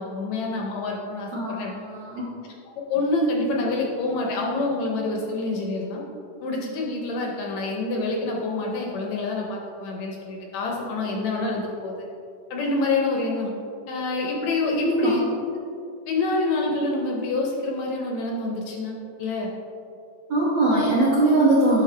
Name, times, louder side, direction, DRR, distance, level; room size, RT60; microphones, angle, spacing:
voice 1, 0.0-1.8 2.9-6.0 6.4-12.1 12.5-13.5 13.9-15.2 16.1-19.5, left 2 dB, 70° left, -1 dB, 1.9 m, -27 dB
voice 2, 1.3-2.3 14.7-15.2 20.3-21.8, right 2 dB, 60° right, -7 dB, 1.2 m, -21 dB
10.0 x 5.9 x 3.3 m, 2.6 s
omnidirectional pair, 3.7 m